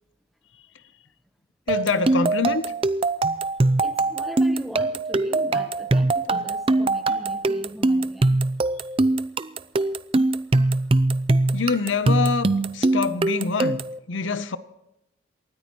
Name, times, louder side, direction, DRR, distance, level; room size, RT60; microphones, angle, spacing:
voice 1, 1.7-2.6 11.5-14.6, left 4 dB, 70° left, 0.7 m, -25 dB
sound 1, 1.7-14.0, right 2 dB, 30° right, 0.4 m, -22 dB
voice 2, 3.8-8.4, equal, ahead, 1.0 m, -39 dB
28.0 x 13.5 x 3.1 m
head